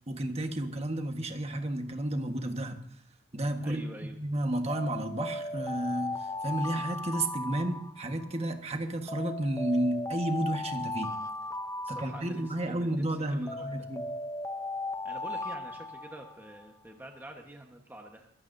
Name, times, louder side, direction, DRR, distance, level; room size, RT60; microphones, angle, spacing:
voice 1, 0.1-2.8 3.3-3.8 4.2-11.2 11.9-14.0, right 1 dB, 35° right, 5 dB, 1.4 m, -32 dB
voice 2, 3.6-4.2 11.8-13.9 15.0-18.3, right 1 dB, 10° right, 2 dB, 1.2 m, -47 dB
Alarm, 4.7-8.4 9.1-12.8 13.5-16.7, left 2 dB, 15° left, 0.6 m, -37 dB
22.5 x 15.0 x 2.7 m, 0.63 s
head